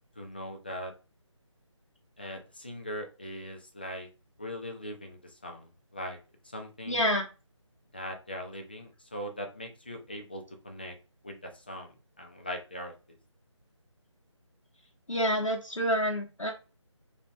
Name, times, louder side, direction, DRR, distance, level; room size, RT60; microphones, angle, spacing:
voice 1, 0.2-0.9 2.2-4.1 4.4-6.2 6.4-7.0 7.9-11.0 11.2-13.2, equal, 20° left, 3 dB, 0.4 m, -40 dB
voice 2, 6.9-7.3 15.1-16.5, equal, 90° left, -2 dB, 0.9 m, -28 dB
3.3 x 2.7 x 3.0 m, 0.31 s
figure-of-eight pair, 160°, 16 cm